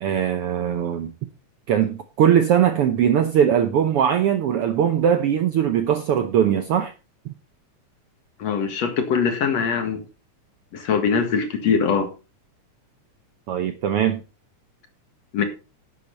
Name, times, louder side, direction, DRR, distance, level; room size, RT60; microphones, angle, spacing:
voice 1, 0.0-1.1 1.7-6.9 7.3-7.4 13.5-14.2, right 9 dB, 70° right, 1.4 m, -20 dB
voice 2, 8.4-10.0 10.7-12.1 15.3-15.4, left 6 dB, 60° left, 2.8 m, -22 dB
11.5 x 8.4 x 4.0 m
omnidirectional pair, 3.4 m